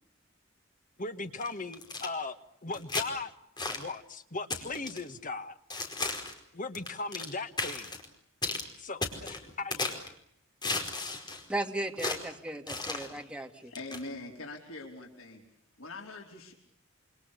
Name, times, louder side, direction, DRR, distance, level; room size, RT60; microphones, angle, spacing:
voice 1, 1.0-3.3 3.6-5.6 6.5-8.0 8.8-10.0, left 3 dB, 40° left, 9 dB, 1.9 m, -38 dB
sound 1, 1.4-2.1 2.7-3.1 3.6-3.9 4.5-5.0 5.7-6.4 6.7-7.3 7.6-8.0 8.4-8.7 9.0-10.1 10.6-11.4 12.0-12.2 12.7-13.1 13.7-14.0, left 3 dB, 20° left, 4.8 m, -34 dB
voice 2, 11.5-13.7, right 1 dB, 5° right, 3 dB, 2.6 m, -36 dB
voice 3, 13.7-15.4 15.8-16.5, left 2 dB, 85° left, 1 dB, 4.7 m, -43 dB
28.0 x 27.0 x 6.8 m, 0.69 s
head